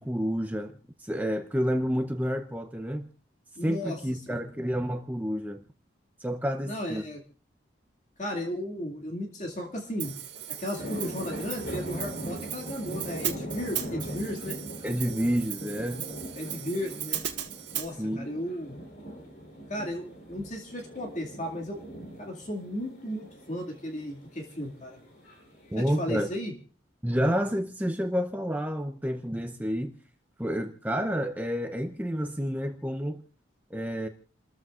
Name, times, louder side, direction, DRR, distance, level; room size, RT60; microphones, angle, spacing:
voice 1, 0.0-3.1 3.6-5.6 6.2-7.0 14.8-16.0 18.0-18.3 25.7-26.3 27.0-30.0 30.4-33.2 33.7-34.1, equal, 10° right, 0.7 m, -29 dB
voice 2, 3.6-4.0 4.3-4.4 6.6-7.2 8.2-10.1 10.6-14.6 16.4-17.2 17.7-18.8 19.7-21.8 22.2-25.0 25.8-26.5, left 1 dB, 40° left, 2.2 m, -35 dB
sound 1, 9.8-26.2, equal, 55° left, 3.8 m, -41 dB
Hi-hat, 10.0-17.9, right 12 dB, 70° right, 1.8 m, -37 dB
29.5 x 14.0 x 2.5 m
head